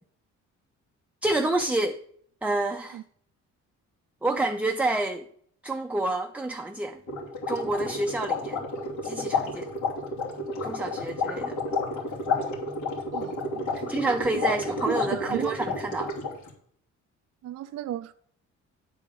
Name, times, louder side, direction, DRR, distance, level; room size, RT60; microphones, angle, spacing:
voice 1, 1.2-2.0 2.4-3.0 4.2-5.3 5.6-7.0 7.5-8.7 9.0-9.7 10.6-11.6 13.7-16.1, right 2 dB, 5° right, 0.5 m, -28 dB
sound 1, 7.1-16.5, left 3 dB, 80° left, 3.0 m, -31 dB
voice 2, 13.1-13.9 14.3-14.6 14.9-15.6 17.4-18.1, right 12 dB, 60° right, 0.5 m, -34 dB
9.7 x 4.6 x 5.3 m
cardioid pair, 90°, 30 cm